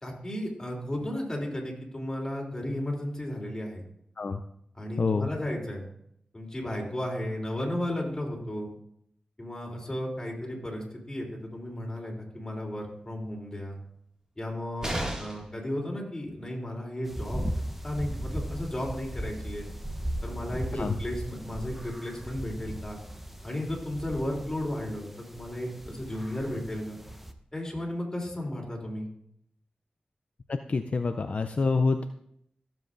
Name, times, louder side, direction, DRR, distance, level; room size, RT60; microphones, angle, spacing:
voice 1, 0.0-3.8 4.7-5.8 6.3-8.7 9.4-13.8 14.4-17.4 17.8-19.7 20.2-23.0 23.4-27.0 27.5-29.1, left 1 dB, 20° left, -1 dB, 3.2 m, -34 dB
voice 2, 5.0-5.3 20.7-21.0 30.5-32.0, left 4 dB, 55° left, 8 dB, 0.4 m, -27 dB
sound 1, 14.8-15.6 17.5-17.6 17.9-18.0, right 1 dB, 25° right, 2.1 m, -33 dB
sound 2, 17.0-27.3, right 1 dB, 5° right, 0.9 m, -37 dB
14.5 x 7.5 x 2.6 m, 0.73 s
cardioid pair, 55°, 3 cm